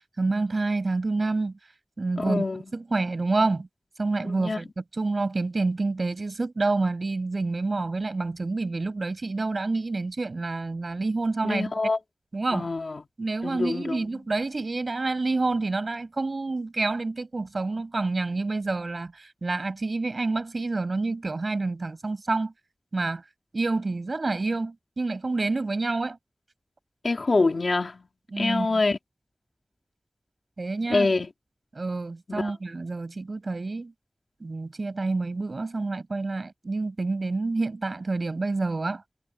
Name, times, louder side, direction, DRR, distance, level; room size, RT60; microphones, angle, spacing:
voice 1, 0.2-1.5 2.0-2.4 2.7-3.7 4.0-11.7 12.3-12.7 13.2-22.5 22.9-23.2 23.5-26.2 28.3-28.8 30.6-31.1 31.7-33.9 34.4-39.0, right 3 dB, 65° right, 6.8 m, -28 dB
voice 2, 2.2-2.6 4.4-4.6 11.4-12.0 12.5-13.0 13.4-14.0 27.0-28.0 28.4-29.0 30.9-31.3 32.3-32.5, left 3 dB, 80° left, 2.3 m, -25 dB
wide cardioid pair, 70°, 0 cm